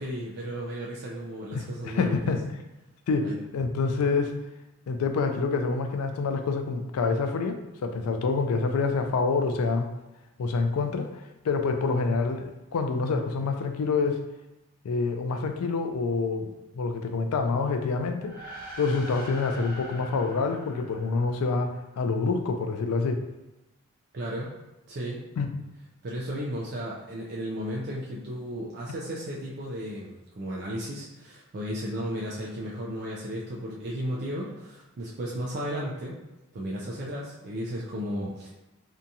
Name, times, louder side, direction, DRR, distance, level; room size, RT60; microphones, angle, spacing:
voice 1, 0.0-2.2 3.2-3.4 24.1-24.6 24.9-25.2 26.0-36.2 36.5-38.5, equal, 45° right, -4 dB, 0.3 m, -34 dB
voice 2, 1.5-2.4 3.1-4.4 4.9-9.9 10.4-14.2 14.8-16.5 16.7-23.2 25.4-25.5, left 4 dB, 85° left, 6 dB, 0.3 m, -27 dB
sound 1, 18.2-21.8, equal, 20° left, 0.6 m, -43 dB
2.8 x 2.3 x 2.6 m, 0.98 s
head